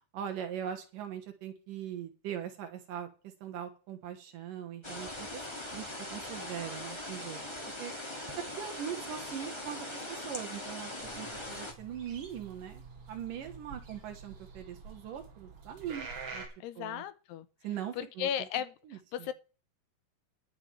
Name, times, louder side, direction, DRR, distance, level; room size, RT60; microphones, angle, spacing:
voice 1, 0.1-5.4 5.7-7.4 7.8-7.9 8.6-16.4 16.8-17.0 17.6-18.3 18.5-19.3, right 9 dB, 65° right, 2.6 m, -41 dB
sound 1, 4.8-11.7, left 1 dB, 45° left, 0.3 m, -41 dB
sound 2, 11.0-16.5, right 4 dB, 40° right, 2.8 m, -47 dB
voice 2, 16.6-17.5 18.0-19.3, left 10 dB, 85° left, 3.0 m, -36 dB
20.5 x 6.9 x 3.4 m
omnidirectional pair, 4.6 m